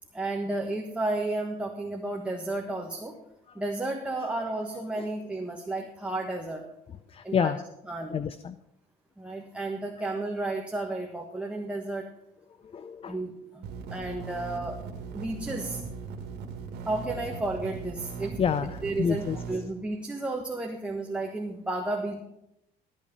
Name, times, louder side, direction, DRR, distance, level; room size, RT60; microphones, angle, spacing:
voice 1, 0.1-3.1 3.5-6.6 7.2-7.5 7.9-8.2 9.2-12.1 13.1-14.8 15.1-15.8 16.9-18.4 18.8-22.2, right 2 dB, 5° right, 0 dB, 1.3 m, -32 dB
voice 2, 7.1-7.6 8.1-8.6 12.6-13.2 18.4-19.4, left 7 dB, 35° left, 13 dB, 0.5 m, -28 dB
sound 1, 13.6-19.5, right 5 dB, 80° right, 1.8 m, -39 dB
13.5 x 8.4 x 5.4 m, 0.84 s
cardioid pair, 110°, 17 cm